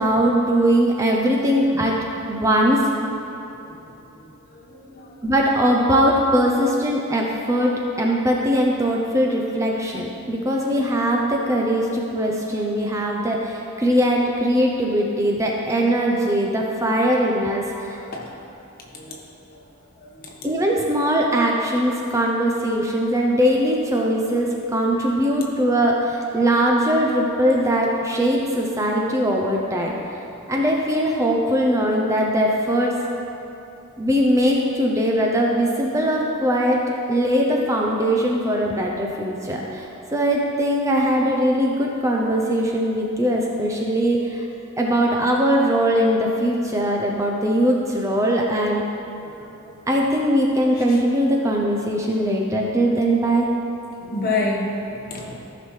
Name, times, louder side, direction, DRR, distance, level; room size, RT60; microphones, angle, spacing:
voice 1, 0.0-2.9 5.2-18.1 20.4-29.9 30.5-33.0 34.0-36.8 37.1-44.4 44.8-48.8 49.9-53.5, equal, 15° right, -1 dB, 0.5 m, -21 dB
voice 2, 4.7-5.1 18.1-18.3 18.9-19.2 20.0-20.3 49.2-49.3 50.9-51.0 54.0-55.4, left 2 dB, 40° left, -2 dB, 1.3 m, -28 dB
14.0 x 5.9 x 3.2 m, 2.9 s
head